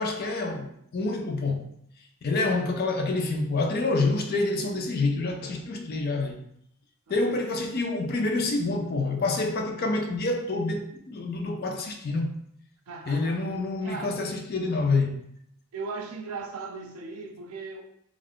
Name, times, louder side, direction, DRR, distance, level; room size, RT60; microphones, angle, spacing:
voice 1, 0.0-1.7 2.2-6.4 7.1-12.4 13.1-15.2, left 3 dB, 45° left, 0.4 m, -27 dB
voice 2, 12.9-13.4 13.8-14.2 15.7-17.8, right 4 dB, 80° right, 0.5 m, -37 dB
2.4 x 2.3 x 3.4 m
head